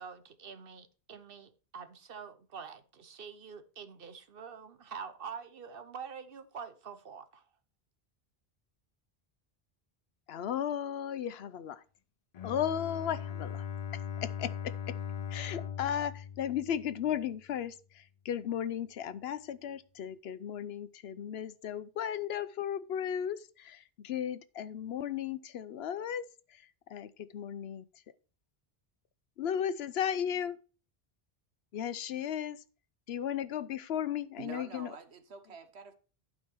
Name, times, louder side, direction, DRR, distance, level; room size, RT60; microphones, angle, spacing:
voice 1, 0.0-7.4, right 6 dB, 60° right, 1.1 m, -46 dB
voice 2, 10.3-11.8 12.4-13.6 14.2-14.9 15.3-26.2 26.9-27.8 29.4-30.6 31.7-32.6 33.1-34.9, left 9 dB, 75° left, 0.9 m, -35 dB
Bowed string instrument, 12.3-17.3, left 8 dB, 50° left, 0.5 m, -40 dB
voice 3, 34.4-35.9, right 5 dB, 85° right, 1.4 m, -47 dB
11.5 x 5.4 x 4.5 m
omnidirectional pair, 1.1 m